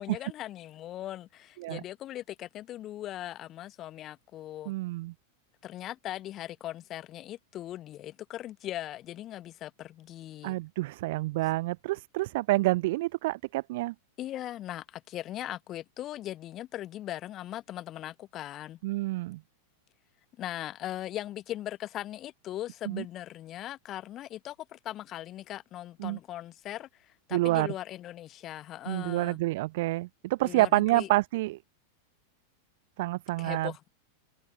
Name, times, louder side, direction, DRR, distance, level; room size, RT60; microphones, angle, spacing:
voice 1, 0.0-4.7 5.6-10.6 14.2-18.8 20.4-29.4 30.4-31.1 33.4-33.9, left 13 dB, 30° left, 1.1 m, -39 dB
voice 2, 4.7-5.1 10.4-13.9 18.8-19.4 22.9-23.0 26.0-26.2 27.3-27.7 28.9-31.6 33.0-33.7, right 19 dB, 50° right, 0.6 m, -28 dB
figure-of-eight pair, 90°, 0 cm